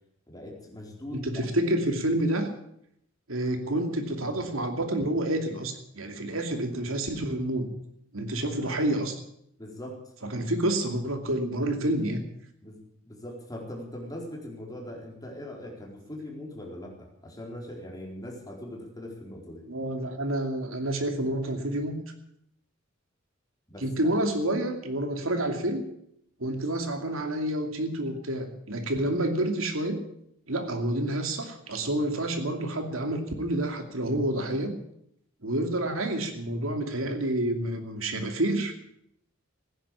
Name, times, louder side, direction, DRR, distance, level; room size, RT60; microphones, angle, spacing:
voice 1, 0.3-1.5 9.6-10.0 10.3-10.4 12.6-12.8 13.0-19.6 23.7-23.9, left 1 dB, 20° left, -1 dB, 4.3 m, -41 dB
voice 2, 1.1-2.5 3.3-7.7 8.1-9.2 10.2-12.2 19.7-22.0 23.8-25.8 26.4-30.0 30.5-34.7 35.4-38.7, right 1 dB, 85° right, 5 dB, 2.6 m, -28 dB
15.5 x 10.5 x 8.5 m, 0.73 s
head